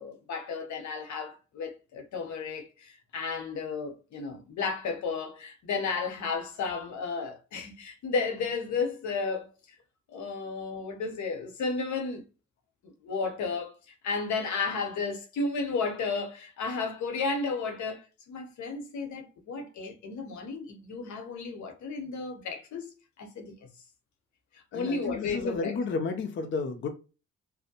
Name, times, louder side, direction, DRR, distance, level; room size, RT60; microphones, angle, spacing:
voice 1, 0.0-9.5 10.1-12.2 12.8-22.9 23.2-23.6 24.5-25.8, left 4 dB, 70° left, 0.8 m, -33 dB
voice 2, 24.7-26.9, left 4 dB, 40° left, 0.5 m, -32 dB
2.5 x 2.1 x 2.7 m
cardioid pair, 90°, 30 cm